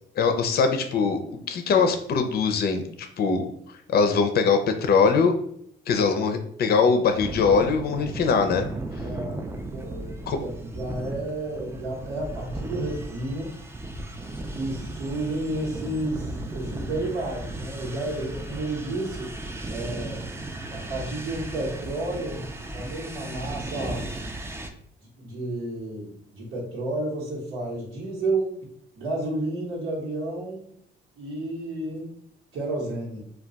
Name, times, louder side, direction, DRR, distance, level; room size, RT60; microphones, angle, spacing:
voice 1, 0.2-2.8 3.2-3.5 3.9-5.3 5.9-8.7 10.3-10.4, left 5 dB, 50° left, 7 dB, 0.5 m, -22 dB
sound 1, 7.2-24.7, right 2 dB, 15° right, 0.3 m, -36 dB
voice 2, 9.0-13.5 14.5-19.3 19.7-20.2 20.7-24.1 25.0-28.6 29.0-30.7 31.2-32.2 32.5-33.2, right 2 dB, 90° right, -5 dB, 1.1 m, -31 dB
2.3 x 2.3 x 3.9 m, 0.69 s
cardioid pair, 90°, 20 cm